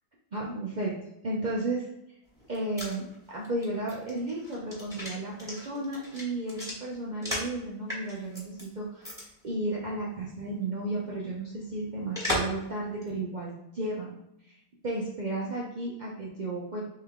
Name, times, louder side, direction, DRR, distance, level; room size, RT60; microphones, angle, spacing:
voice 1, 0.3-1.0 1.2-1.9 2.5-9.1 9.4-14.2 14.5-14.6 14.8-16.8, right 2 dB, 90° right, -4 dB, 0.4 m, -33 dB
sound 1, 2.3-7.6 7.9-8.6 9.0-9.2 9.5-9.6 12.1-12.6 13.0-13.1, left 1 dB, ahead, 1.2 m, -35 dB
3.7 x 3.2 x 3.5 m, 0.82 s
omnidirectional pair, 1.7 m